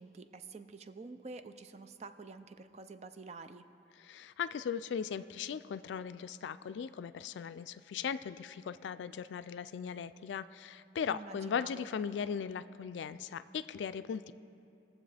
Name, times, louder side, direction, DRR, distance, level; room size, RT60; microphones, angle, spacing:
voice 1, 0.0-3.6 11.1-11.9, right 3 dB, 40° right, 10 dB, 0.4 m, -48 dB
voice 2, 4.0-14.3, left 7 dB, 80° left, 14 dB, 0.3 m, -38 dB
21.0 x 7.3 x 3.3 m, 2.7 s
head